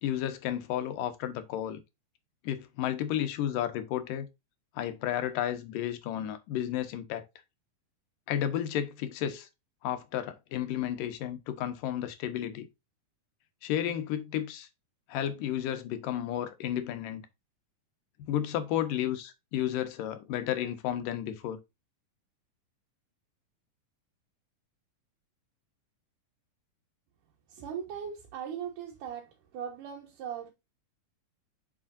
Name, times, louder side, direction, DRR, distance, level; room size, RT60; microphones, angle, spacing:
voice 1, 0.0-1.8 2.4-4.3 4.8-7.3 8.3-9.5 9.8-12.7 13.6-14.7 15.1-17.3 18.3-21.6, left 11 dB, 80° left, 2.7 m, -32 dB
voice 2, 27.5-30.5, right 8 dB, 75° right, 2.8 m, -39 dB
7.3 x 6.1 x 2.6 m
omnidirectional pair, 3.8 m